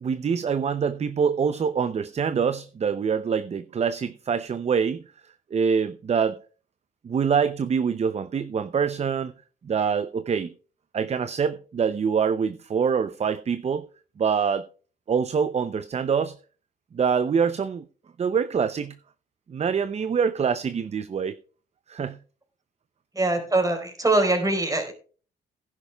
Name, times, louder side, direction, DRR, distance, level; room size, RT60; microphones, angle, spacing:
voice 1, 0.0-5.0 5.5-6.4 7.0-9.3 9.6-10.5 10.9-13.9 14.2-14.7 15.1-16.4 16.9-17.8 18.2-19.0 19.5-21.4 21.9-22.2, right 6 dB, 35° right, 0.5 m, -25 dB
voice 2, 23.1-24.9, right 2 dB, 15° right, 4.1 m, -23 dB
17.0 x 10.5 x 2.3 m
cardioid pair, 90°, 20 cm